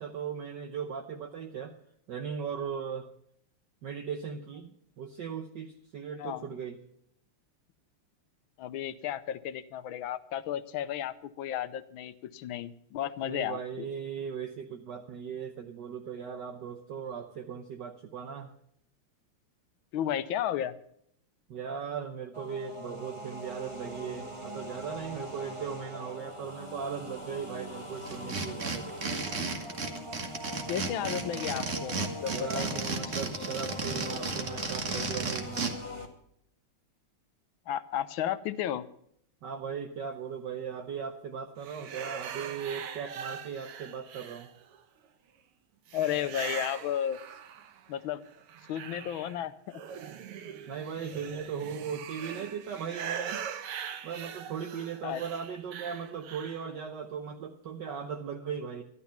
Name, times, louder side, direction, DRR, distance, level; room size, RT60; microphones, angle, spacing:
voice 1, 0.0-1.8 2.1-3.1 3.8-6.8 13.2-18.5 21.5-28.9 32.3-35.8 39.4-44.5 50.7-53.5 54.0-58.8, right 7 dB, 60° right, 5 dB, 1.3 m, -38 dB
voice 2, 8.6-13.9 19.9-20.7 30.7-32.8 37.7-38.9 45.9-47.2 47.9-48.2 48.7-49.8 55.0-55.2, left 10 dB, 75° left, 13 dB, 1.4 m, -33 dB
sound 1, 22.3-36.1, left 1 dB, 15° right, 1.2 m, -42 dB
sound 2, 28.0-35.7, right 4 dB, 40° right, 1.5 m, -33 dB
sound 3, 41.6-44.8 45.9-47.9 48.3-56.7, right 8 dB, 80° right, 1.9 m, -41 dB
13.0 x 11.5 x 5.7 m, 0.70 s
omnidirectional pair, 2.4 m